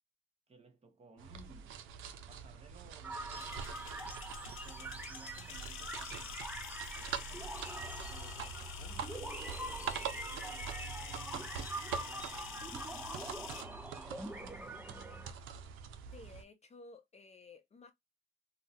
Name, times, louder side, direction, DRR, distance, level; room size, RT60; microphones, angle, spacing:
voice 1, 0.5-1.8 2.3-6.5 6.9-9.3 9.7-14.8, right 4 dB, 30° right, 0.9 m, -59 dB
sound 1, 1.2-16.4, right 7 dB, 90° right, 0.5 m, -45 dB
sound 2, 3.0-15.3, right 2 dB, 10° right, 0.5 m, -45 dB
sound 3, 3.3-13.6, left 10 dB, 85° left, 0.5 m, -49 dB
voice 2, 16.1-17.9, left 3 dB, 35° left, 0.6 m, -55 dB
2.7 x 2.1 x 2.7 m
cardioid pair, 90°, 20 cm